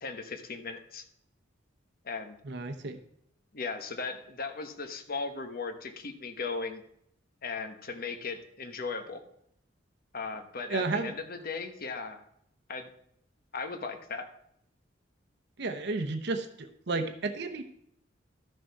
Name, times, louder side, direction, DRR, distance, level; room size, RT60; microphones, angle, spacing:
voice 1, 0.0-1.0 2.0-2.4 3.5-6.8 7.4-9.2 10.1-12.2 12.7-12.9 13.5-14.3, left 4 dB, 50° left, 7 dB, 1.1 m, -37 dB
voice 2, 2.4-3.0 10.7-11.1 15.6-17.6, right 3 dB, 60° right, 6 dB, 0.9 m, -32 dB
13.0 x 6.4 x 4.7 m, 0.73 s
head